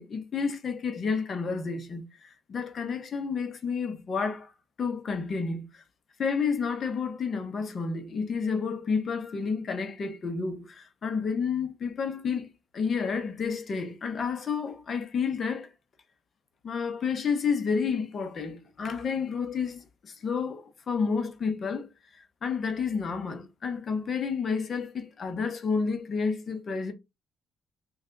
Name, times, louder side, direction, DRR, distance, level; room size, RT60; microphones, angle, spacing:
voice 1, 0.0-4.5 4.8-5.8 6.2-12.5 12.7-15.7 16.6-26.9, left 5 dB, 50° left, 0.9 m, -30 dB
3.3 x 2.5 x 3.8 m
cardioid pair, 90°, 0 cm